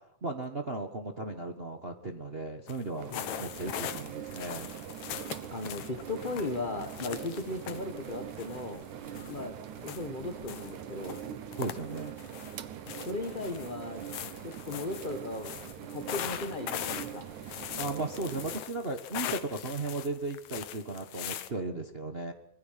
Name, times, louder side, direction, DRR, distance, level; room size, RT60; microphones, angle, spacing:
voice 1, 0.2-4.7 9.1-9.5 11.6-12.1 17.8-22.3, right 2 dB, 65° right, 5 dB, 0.5 m, -36 dB
sound 1, 2.7-2.8 3.1-9.4 9.8-10.7 11.0-12.6 12.8-21.5, left 11 dB, 70° left, 2.3 m, -41 dB
sound 2, 3.0-18.6, right 10 dB, 80° right, 2.7 m, -43 dB
voice 2, 5.5-8.8 9.3-11.2 12.9-14.0 14.4-17.3, left 2 dB, 35° left, 6 dB, 0.7 m, -37 dB
24.5 x 21.0 x 5.8 m, 0.71 s
omnidirectional pair, 3.4 m